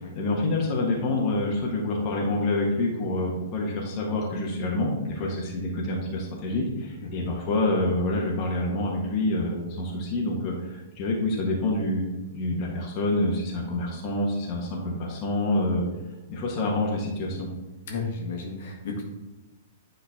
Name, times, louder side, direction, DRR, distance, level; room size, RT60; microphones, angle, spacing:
voice 1, 0.1-12.0 12.3-15.9 16.3-17.5, left 2 dB, 35° left, -2 dB, 1.5 m, -27 dB
voice 2, 17.8-19.1, left 4 dB, 55° left, 0 dB, 1.6 m, -33 dB
9.8 x 3.9 x 3.6 m, 1.1 s
figure-of-eight pair, 110°, 0 cm